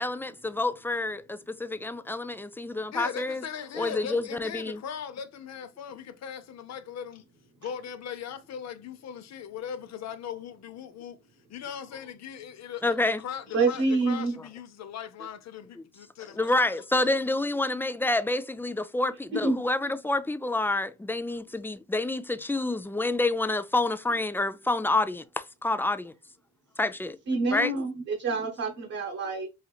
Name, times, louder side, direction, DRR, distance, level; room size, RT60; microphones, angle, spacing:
voice 1, 0.0-3.4 3.7-4.8 12.8-13.2 16.4-26.1 26.8-27.2 27.5-27.7, left 2 dB, 5° left, 0.3 m, -28 dB
voice 2, 2.9-7.2 7.6-11.2 11.5-16.5, left 8 dB, 60° left, 0.7 m, -39 dB
voice 3, 13.5-14.3 19.3-19.6 27.3-29.5, right 3 dB, 55° right, 1.1 m, -27 dB
5.0 x 2.8 x 2.3 m
cardioid pair, 90°, 30 cm